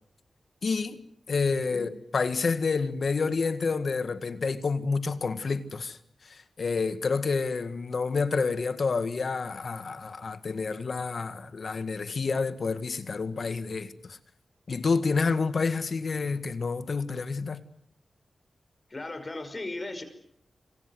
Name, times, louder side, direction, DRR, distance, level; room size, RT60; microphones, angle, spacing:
voice 1, 0.6-14.2 14.7-17.6, left 4 dB, 60° left, 1.9 m, -29 dB
voice 2, 18.9-20.0, left 2 dB, 30° left, 5.6 m, -36 dB
28.0 x 25.0 x 8.0 m
wide cardioid pair, 85°, 0 cm